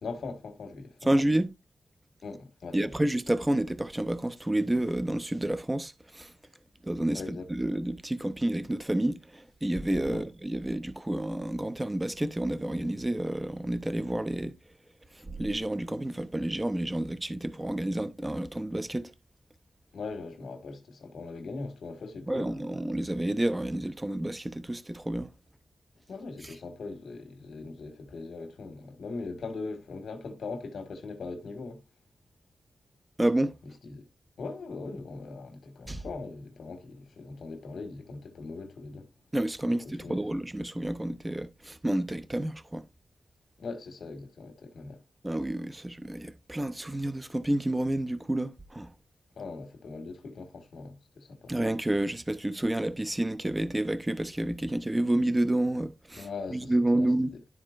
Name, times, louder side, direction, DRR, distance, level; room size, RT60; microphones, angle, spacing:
voice 1, 0.0-1.1 2.2-2.9 7.1-7.5 10.1-10.3 19.9-22.5 26.1-31.8 33.7-34.0 34.4-39.1 39.7-40.2 43.6-45.0 49.4-51.5 56.1-57.4, left 3 dB, 85° left, 1.7 m, -40 dB
voice 2, 1.1-1.5 2.7-6.3 6.8-14.5 15.2-19.1 22.3-25.3 33.2-33.5 35.9-36.0 39.3-42.8 45.2-48.9 51.5-57.3, right 1 dB, 15° right, 0.7 m, -29 dB
12.0 x 4.3 x 2.5 m
wide cardioid pair, 85°, 0 cm